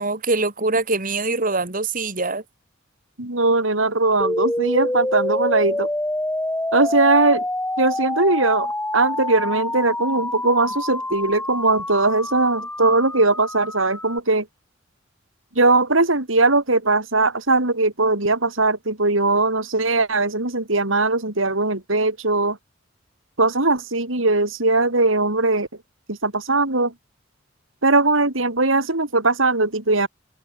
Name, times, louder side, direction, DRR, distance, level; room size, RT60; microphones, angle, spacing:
voice 1, 0.0-2.4, right 3 dB, 45° right, 3.5 m, -23 dB
voice 2, 3.2-5.9 6.7-7.4 7.8-8.7 8.9-14.5 15.6-22.6 23.4-25.7 26.1-26.9 27.8-30.1, right 3 dB, 85° right, 4.4 m, -20 dB
sound 1, 4.2-14.2, left 1 dB, 10° left, 1.6 m, -27 dB
head